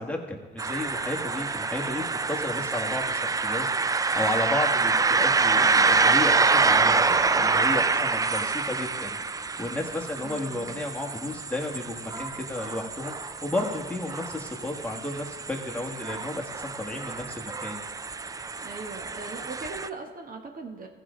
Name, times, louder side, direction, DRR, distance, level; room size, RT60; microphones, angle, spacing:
voice 1, 0.0-17.8, left 2 dB, 5° left, 0 dB, 1.6 m, -33 dB
sound 1, 0.6-19.9, right 4 dB, 20° right, 0.3 m, -26 dB
voice 2, 10.2-10.8 18.6-20.9, right 3 dB, 45° right, 4 dB, 1.2 m, -40 dB
14.5 x 5.1 x 5.1 m, 1.4 s
cardioid pair, 90°, 20 cm